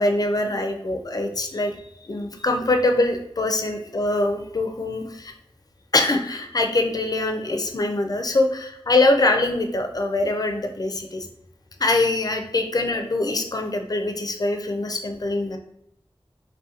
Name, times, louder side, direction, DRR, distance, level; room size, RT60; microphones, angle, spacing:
voice 1, 0.0-1.8 2.0-5.3 5.9-11.3 11.8-15.6, left 2 dB, 40° left, 4 dB, 0.3 m, -23 dB
2.7 x 2.1 x 2.4 m, 0.73 s
wide cardioid pair, 55°, 10 cm